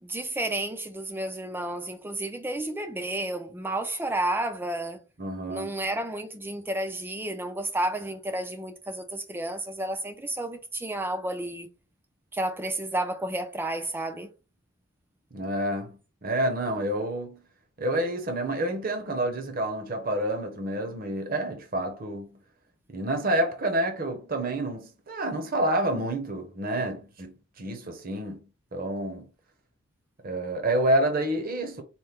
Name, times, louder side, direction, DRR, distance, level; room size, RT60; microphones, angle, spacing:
voice 1, 0.0-5.0 5.5-11.7 12.3-14.3, right 1 dB, 10° right, 0.3 m, -31 dB
voice 2, 5.2-5.7 15.3-17.4 17.8-22.4 22.9-28.4 28.7-29.3 30.2-31.8, right 1 dB, 40° right, 0.7 m, -28 dB
4.3 x 2.1 x 3.4 m
head